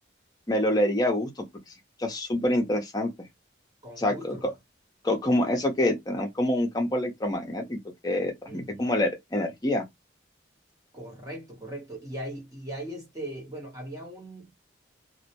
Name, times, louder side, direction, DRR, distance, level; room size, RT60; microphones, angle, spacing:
voice 1, 0.5-1.3 2.0-3.1 4.0-4.5 5.0-9.8, left 1 dB, 20° left, 0.6 m, -26 dB
voice 2, 3.8-4.5 8.5-8.9 10.9-14.5, right 1 dB, 20° right, 0.8 m, -39 dB
2.1 x 2.1 x 2.7 m
head